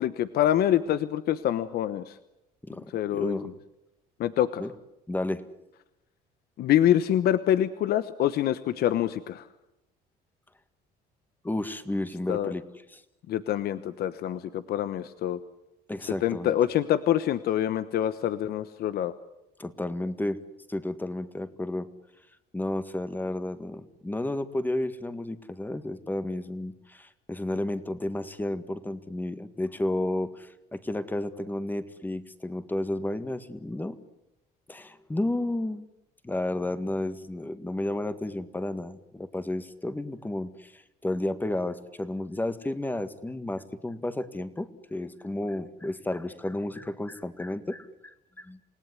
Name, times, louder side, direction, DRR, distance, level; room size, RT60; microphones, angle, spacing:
voice 1, 0.0-2.2 2.9-3.4 4.2-4.6 6.6-9.5 12.3-12.5 13.3-15.4 16.2-19.1, left 11 dB, 70° left, 13 dB, 1.0 m, -25 dB
voice 2, 2.6-3.5 4.6-4.7 5.1-5.4 11.4-12.6 12.9-13.0 15.9-16.5 19.6-20.4 20.7-21.9 22.5-34.0 34.7-35.8 36.2-48.6, left 1 dB, 10° left, 12 dB, 1.7 m, -32 dB
29.0 x 18.0 x 9.6 m, 0.91 s
cardioid pair, 110°, 17 cm